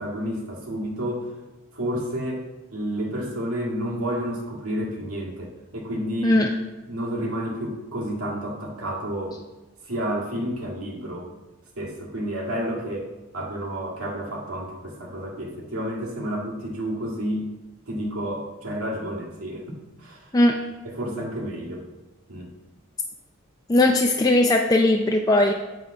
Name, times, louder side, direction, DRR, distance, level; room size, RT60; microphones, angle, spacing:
voice 1, 0.0-1.3 1.7-2.4 2.7-6.4 6.9-9.4 9.9-11.3 11.8-17.4 17.9-19.6 20.0-20.4 20.8-21.9 22.3-22.5, equal, 90° right, -2 dB, 2.0 m, -30 dB
voice 2, 23.7-25.5, left 1 dB, 15° left, 2 dB, 0.4 m, -18 dB
9.0 x 3.7 x 5.9 m, 1.1 s
head